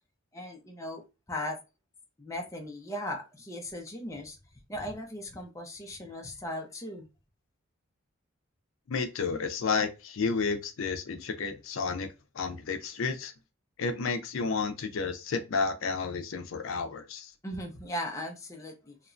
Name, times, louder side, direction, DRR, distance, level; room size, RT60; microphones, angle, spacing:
voice 1, 0.3-1.6 2.2-4.4 4.7-7.1 17.4-19.0, left 1 dB, 15° left, 0.5 m, -38 dB
voice 2, 8.9-12.1 12.3-13.3 13.8-17.3, left 4 dB, 70° left, 0.4 m, -31 dB
2.9 x 2.2 x 2.4 m
head